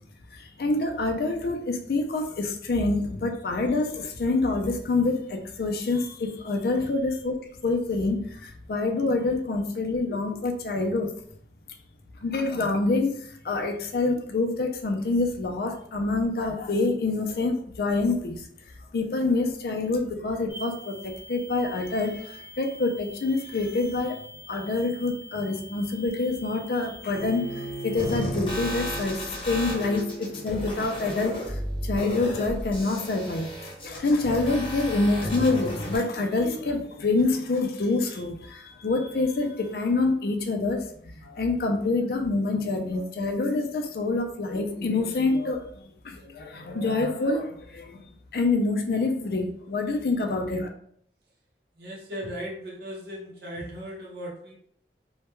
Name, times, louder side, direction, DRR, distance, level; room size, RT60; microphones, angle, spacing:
voice 1, 0.3-7.4 7.6-11.1 12.2-18.5 18.9-24.2 24.5-48.0 48.3-50.7, left 3 dB, 60° left, 4 dB, 0.4 m, -26 dB
sound 1, 20.5-28.2, equal, 15° right, 0.7 m, -45 dB
Bowed string instrument, 27.1-32.2, right 2 dB, 75° left, 0.8 m, -40 dB
sound 2, 28.0-36.0, equal, 30° left, 0.7 m, -33 dB
voice 2, 51.8-54.5, equal, 65° right, -3 dB, 0.6 m, -37 dB
2.2 x 2.1 x 3.0 m, 0.64 s
head